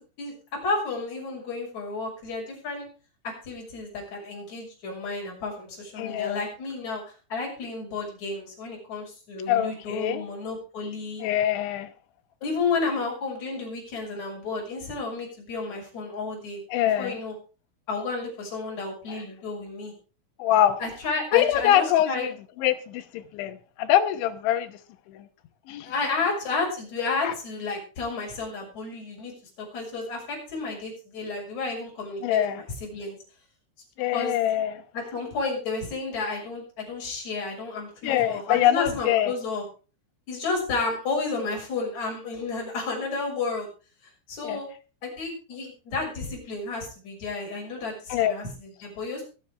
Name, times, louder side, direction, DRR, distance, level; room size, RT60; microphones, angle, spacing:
voice 1, 0.2-2.9 3.2-11.2 12.4-16.6 17.0-17.4 17.9-19.9 20.8-22.3 25.8-33.2 34.1-34.4 34.9-39.7 40.3-43.7 44.3-44.7 45.0-49.2, left 3 dB, 35° left, 7.1 m, -32 dB
voice 2, 6.0-6.4 9.5-10.2 11.2-11.9 16.7-17.1 20.4-20.8 21.3-22.3 22.6-24.8 25.1-25.3 25.7-25.9 27.2-27.3 32.2-32.6 34.0-34.8 38.0-39.3 44.4-44.6 48.1-48.3, left 11 dB, 75° left, 3.2 m, -24 dB
22.5 x 8.5 x 3.4 m
omnidirectional pair, 5.9 m